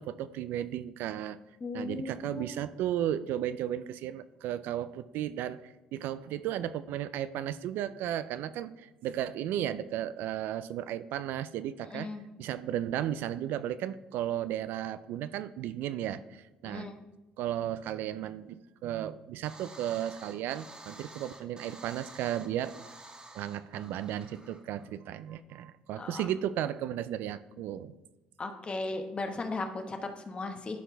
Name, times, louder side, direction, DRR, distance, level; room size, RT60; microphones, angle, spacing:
voice 1, 0.0-1.4 1.7-12.1 12.4-16.9 17.4-22.8 23.3-27.9, right 11 dB, 75° right, 13 dB, 0.3 m, -34 dB
voice 2, 1.6-2.5 11.8-12.2 16.6-17.0 26.0-26.3 28.4-30.8, left 3 dB, 35° left, 5 dB, 1.1 m, -37 dB
sound 1, 19.4-24.9, right 2 dB, 25° right, 1.5 m, -50 dB
11.5 x 4.6 x 3.4 m, 1.0 s
supercardioid pair, 70°, 3 cm